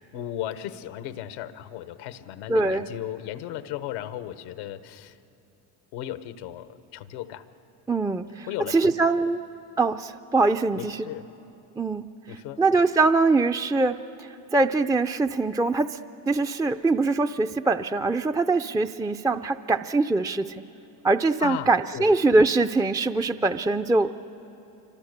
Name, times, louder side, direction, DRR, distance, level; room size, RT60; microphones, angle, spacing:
voice 1, 0.1-5.2 5.9-7.4 8.5-8.9 10.7-11.3 12.3-12.6 21.4-22.1, left 12 dB, 85° left, 12 dB, 1.1 m, -36 dB
voice 2, 2.5-2.9 7.9-9.4 9.8-11.1 11.8-12.1 12.6-16.0 16.3-20.6 21.0-24.2, right 3 dB, 10° right, 7 dB, 0.4 m, -23 dB
26.5 x 24.5 x 6.6 m, 2.9 s
supercardioid pair, 70°, 49 cm